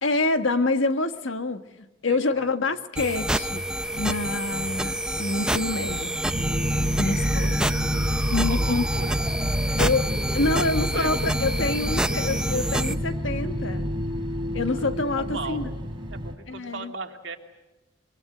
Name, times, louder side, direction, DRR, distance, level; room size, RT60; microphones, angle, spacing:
voice 1, 0.0-3.6 3.9-6.2 7.0-7.6 8.3-8.8 9.8-13.9 14.5-15.7 16.5-16.9, left 3 dB, 80° left, 9 dB, 1.5 m, -27 dB
voice 2, 2.0-2.4 7.1-7.5 8.5-9.2 9.7-9.8 10.9-11.2 14.5-14.9 15.1-15.6 16.1-17.4, right 3 dB, 65° right, 4 dB, 2.6 m, -38 dB
sound 1, 3.0-12.9, right 1 dB, 5° right, 0.8 m, -28 dB
sound 2, 6.3-16.3, equal, 25° right, 3.5 m, -28 dB
24.0 x 23.0 x 7.9 m, 1.1 s
head